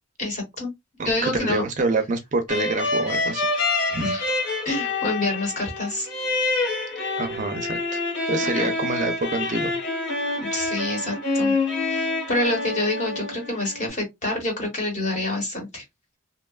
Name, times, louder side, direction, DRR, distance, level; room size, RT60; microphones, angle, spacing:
voice 1, 0.2-0.7 1.0-1.6 4.0-4.2 4.6-6.1 8.4-8.7 10.4-11.5 11.9-15.8, left 2 dB, 40° left, 1.2 m, -27 dB
voice 2, 1.0-3.5 3.9-4.1 7.2-8.0 8.3-9.7, right 2 dB, 40° right, 0.4 m, -26 dB
sound 1, 2.5-13.9, left 2 dB, 70° left, 1.6 m, -27 dB
2.8 x 2.2 x 2.3 m
head